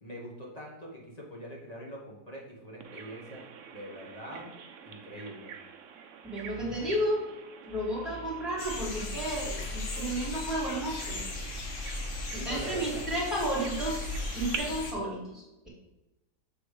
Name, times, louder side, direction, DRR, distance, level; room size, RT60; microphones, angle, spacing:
voice 1, 0.0-3.4 3.7-4.5 4.8-5.5 12.3-13.1, equal, 25° left, -3 dB, 1.2 m, -43 dB
Bird vocalization bird call bird song, 2.8-14.6, right 7 dB, 65° right, 0.8 m, -46 dB
voice 2, 6.2-7.2 7.6-11.2 12.5-14.1 14.3-15.7, right 1 dB, ahead, -5 dB, 2.2 m, -32 dB
sound 1, 8.6-14.9, left 2 dB, 80° left, 1.7 m, -37 dB
7.0 x 3.5 x 4.8 m, 1.0 s
omnidirectional pair, 1.9 m